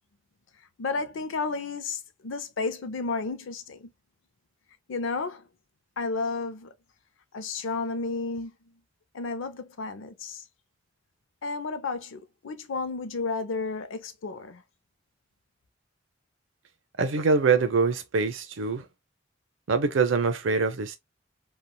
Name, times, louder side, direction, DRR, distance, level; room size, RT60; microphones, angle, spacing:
voice 1, 0.8-3.9 4.9-5.4 6.0-6.7 7.3-8.5 9.1-10.4 11.4-14.6, left 4 dB, 80° left, 0.5 m, -32 dB
voice 2, 17.0-18.9 19.7-21.0, right 4 dB, 80° right, 0.6 m, -24 dB
3.2 x 2.3 x 2.2 m
head